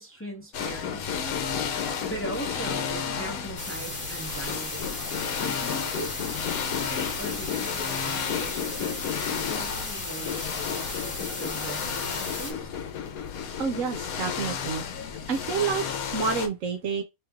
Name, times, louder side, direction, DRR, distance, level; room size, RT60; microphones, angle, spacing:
voice 1, 0.0-1.3 2.0-5.0 5.3-6.1 6.6-12.7, right 1 dB, 10° left, 0.9 m, -40 dB
sound 1, 0.5-16.5, left 7 dB, 80° left, 1.2 m, -32 dB
sound 2, 3.6-12.5, left 2 dB, 40° left, 1.3 m, -36 dB
voice 2, 13.6-17.0, right 5 dB, 65° right, 1.0 m, -29 dB
3.3 x 3.0 x 3.5 m
omnidirectional pair, 1.5 m